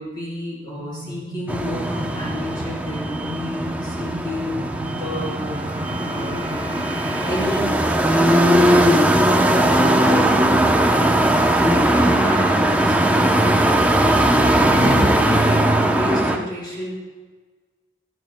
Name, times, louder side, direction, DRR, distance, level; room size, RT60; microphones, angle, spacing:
voice 1, 0.0-5.4 5.7-6.5 7.2-11.3 11.6-16.9, left 1 dB, 25° left, -7 dB, 4.3 m, -31 dB
sound 1, 0.7-7.5, right 1 dB, 35° right, 1.4 m, -34 dB
sound 2, 1.5-16.4, right 1 dB, 10° right, 0.8 m, -18 dB
18.0 x 13.0 x 2.3 m, 1.4 s
head